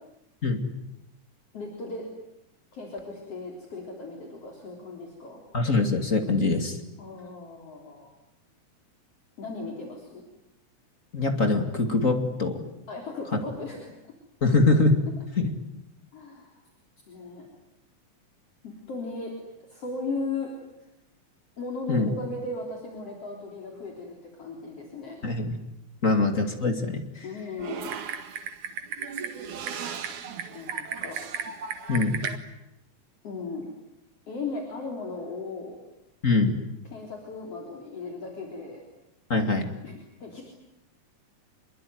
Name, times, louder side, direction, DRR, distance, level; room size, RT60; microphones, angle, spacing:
voice 1, 1.5-2.0 2.7-5.4 7.0-8.1 9.4-10.2 12.9-13.9 14.5-14.6 16.1-16.5 17.1-17.5 18.6-19.3 19.7-20.5 21.6-25.4 27.2-28.0 30.3-31.2 33.2-33.7 34.3-35.7 36.9-38.8 39.8-40.4, left 3 dB, 50° left, 0 dB, 4.7 m, -37 dB
voice 2, 5.5-6.8 11.1-12.6 14.4-15.1 15.4-15.5 21.9-22.1 25.2-25.5 26.0-27.3 31.9-32.2 36.2-36.5 39.3-39.7, left 3 dB, 25° left, 5 dB, 2.5 m, -23 dB
Typing, 27.6-32.4, right 7 dB, 75° right, 3.2 m, -35 dB
26.5 x 22.5 x 9.5 m, 0.86 s
omnidirectional pair, 3.5 m